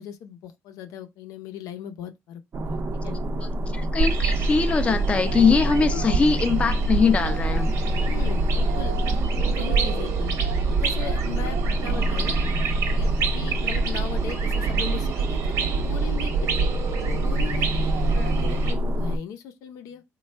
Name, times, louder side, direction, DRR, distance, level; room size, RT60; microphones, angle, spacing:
voice 1, 0.0-2.8 3.0-3.2 5.9-6.2 8.0-9.0 9.4-10.4 10.6-12.3 12.9-16.7 17.0-17.7 18.0-20.0, left 8 dB, 80° left, 0.6 m, -38 dB
sound 1, 2.5-19.2, equal, 40° right, 0.5 m, -28 dB
voice 2, 3.4-7.9 18.1-18.3, left 5 dB, 20° left, 0.4 m, -22 dB
sound 2, 4.0-18.7, right 4 dB, 75° right, 1.1 m, -26 dB
3.1 x 2.3 x 4.3 m
cardioid pair, 120°, 6 cm